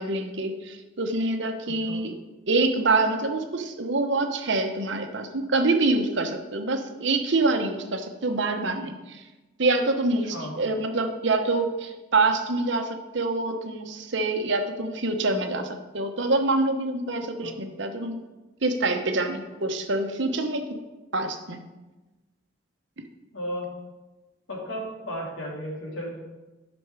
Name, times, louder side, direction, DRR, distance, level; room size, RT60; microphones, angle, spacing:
voice 1, 0.0-2.1 2.5-9.2 9.6-15.7 15.9-18.2 18.6-20.6 21.1-21.6, right 2 dB, 60° right, 5 dB, 0.9 m, -26 dB
voice 2, 1.6-2.0 10.3-10.5 17.4-17.6 23.3-23.7 24.5-26.1, equal, 70° left, -3 dB, 3.0 m, -34 dB
11.0 x 6.2 x 4.8 m, 1.1 s
head